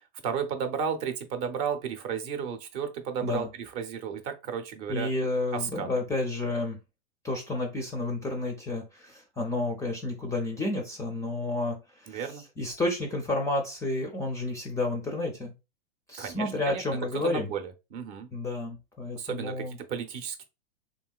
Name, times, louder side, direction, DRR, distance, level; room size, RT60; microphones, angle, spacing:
voice 1, 0.0-5.1 5.5-5.9 12.1-12.4 16.2-16.8 17.1-18.3 19.1-20.4, right 7 dB, 40° right, 0.6 m, -33 dB
voice 2, 4.9-6.8 7.2-12.2 12.6-15.5 16.1-17.5 18.3-19.8, left 2 dB, 10° left, 0.4 m, -31 dB
3.0 x 2.7 x 2.3 m
hypercardioid pair, 120°, 31 cm